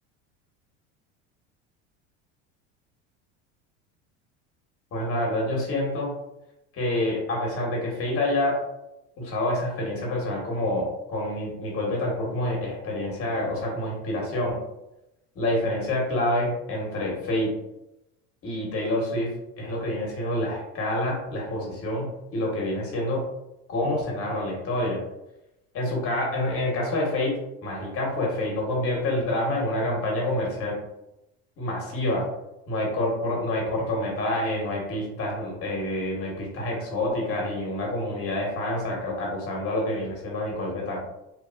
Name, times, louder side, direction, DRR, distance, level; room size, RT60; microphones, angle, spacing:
voice 1, 4.9-6.1 6.7-8.6 9.2-14.6 15.3-17.5 18.4-19.3 19.6-23.2 23.7-25.0 25.7-30.8 31.6-32.2 32.7-41.0, left 1 dB, 40° left, -1 dB, 1.2 m, -27 dB
2.9 x 2.3 x 2.4 m, 0.92 s
supercardioid pair, 95°, 34 cm